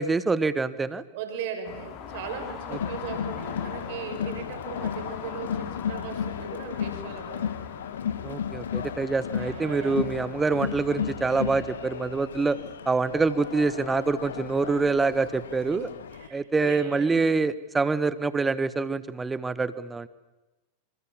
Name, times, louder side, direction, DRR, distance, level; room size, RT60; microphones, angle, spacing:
voice 1, 0.0-1.0 8.2-12.6 12.8-15.9 16.3-20.1, right 4 dB, 10° right, 16 dB, 1.5 m, -26 dB
voice 2, 1.1-7.5 9.3-10.0 15.3-15.4 15.7-17.3, right 7 dB, 50° right, 6 dB, 6.2 m, -38 dB
sound 1, 1.6-11.4, left 9 dB, 40° left, 4.4 m, -42 dB
Crowd, 2.7-16.3, left 8 dB, 65° left, 1.9 m, -34 dB
28.0 x 27.0 x 7.4 m, 1.1 s
figure-of-eight pair, 90°, 0 cm